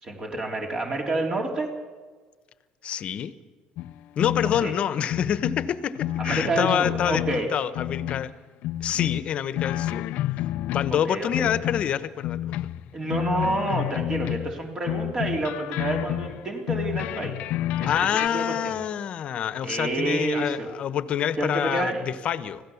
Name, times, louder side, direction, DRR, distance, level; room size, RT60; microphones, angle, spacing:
voice 1, 0.0-1.7 4.6-4.7 6.2-7.5 11.0-11.5 12.9-17.3 17.8-18.7 19.6-20.7 21.4-22.0, right 2 dB, 30° right, 2 dB, 3.3 m, -28 dB
voice 2, 2.8-3.3 4.2-7.2 7.5-8.3 8.8-10.1 10.7-12.5 17.9-22.6, left 9 dB, 50° left, 14 dB, 1.1 m, -27 dB
sound 1, 3.8-4.8 5.1-7.5 7.8-8.3 8.6-11.1 11.3-14.6 14.9-18.3, left 13 dB, 75° left, 0.6 m, -30 dB
25.5 x 17.0 x 7.1 m, 1.5 s
cardioid pair, 125°, 3 cm